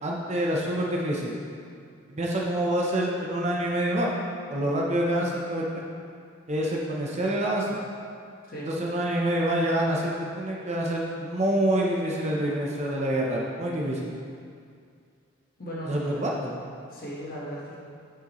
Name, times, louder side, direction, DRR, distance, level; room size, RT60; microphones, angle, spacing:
voice 1, 0.0-1.4 2.1-4.1 4.5-5.8 6.5-7.8 8.7-14.2 15.9-16.6, right 1 dB, 35° right, -2 dB, 0.6 m, -27 dB
voice 2, 15.6-16.2 16.9-17.8, equal, 45° left, -6 dB, 1.4 m, -37 dB
8.5 x 4.8 x 3.0 m, 2.3 s
head